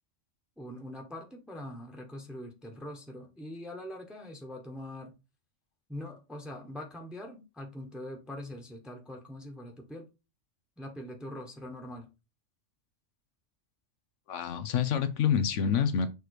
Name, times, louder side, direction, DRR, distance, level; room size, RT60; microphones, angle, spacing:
voice 1, 0.6-5.1 5.9-10.1 10.8-12.1, left 1 dB, ahead, 1.2 m, -43 dB
voice 2, 14.3-16.1, left 7 dB, 80° left, 1.0 m, -27 dB
6.5 x 3.1 x 4.8 m
omnidirectional pair, 1.3 m